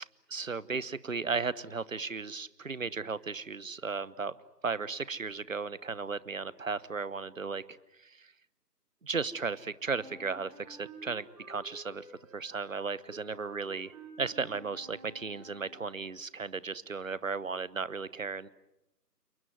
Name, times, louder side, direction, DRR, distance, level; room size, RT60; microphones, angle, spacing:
voice 1, 0.3-4.3 4.6-8.3 9.0-12.1 12.3-13.9 14.2-18.5, right 4 dB, 50° right, 19 dB, 1.1 m, -35 dB
Wind instrument woodwind instrument, 9.9-15.9, right 2 dB, 20° right, 5.7 m, -52 dB
28.5 x 21.0 x 9.4 m, 0.90 s
figure-of-eight pair, 160°, 50 cm